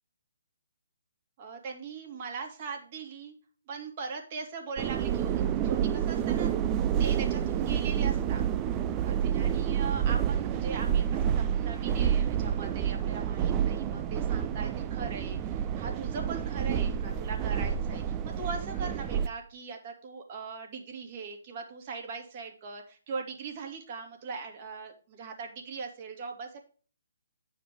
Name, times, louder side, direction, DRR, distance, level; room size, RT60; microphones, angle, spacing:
voice 1, 1.4-3.3 3.7-6.5 7.0-8.4 9.0-26.6, right 5 dB, 35° right, 3 dB, 2.6 m, -40 dB
sound 1, 4.8-19.3, right 9 dB, 20° right, 0.5 m, -29 dB
10.0 x 5.0 x 5.0 m, 0.39 s
hypercardioid pair, 150°, 0 cm